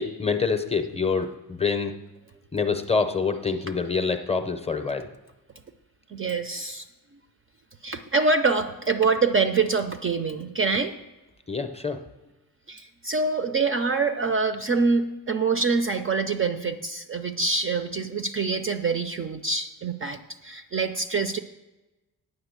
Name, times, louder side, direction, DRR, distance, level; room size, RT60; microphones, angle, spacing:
voice 1, 0.0-1.9 2.5-5.1 11.5-12.0, left 5 dB, 15° left, 7 dB, 0.5 m, -26 dB
voice 2, 6.1-6.8 7.8-10.9 12.7-21.4, right 4 dB, 30° right, 8 dB, 0.4 m, -25 dB
9.7 x 6.6 x 8.0 m, 1.1 s
wide cardioid pair, 180°, 41 cm